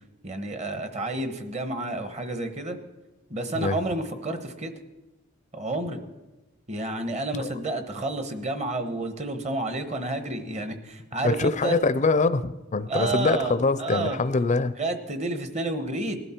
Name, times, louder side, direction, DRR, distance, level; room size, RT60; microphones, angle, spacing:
voice 1, 0.2-2.8 3.3-4.7 5.5-6.0 6.7-11.7 12.9-14.2 14.8-16.2, right 2 dB, 35° right, 8 dB, 1.2 m, -30 dB
voice 2, 11.2-14.7, left 3 dB, 35° left, 13 dB, 0.5 m, -24 dB
19.5 x 12.5 x 4.5 m, 1.1 s
head